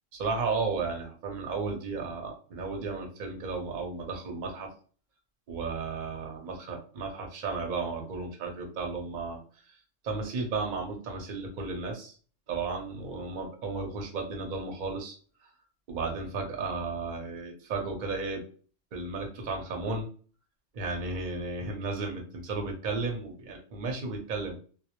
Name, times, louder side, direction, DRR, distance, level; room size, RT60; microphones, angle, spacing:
voice 1, 0.2-4.7 5.5-9.4 10.0-12.1 12.5-15.2 15.9-18.4 18.9-20.1 20.7-24.6, right 4 dB, 50° right, 2 dB, 0.6 m, -34 dB
2.1 x 2.0 x 2.8 m, 0.41 s
omnidirectional pair, 1.3 m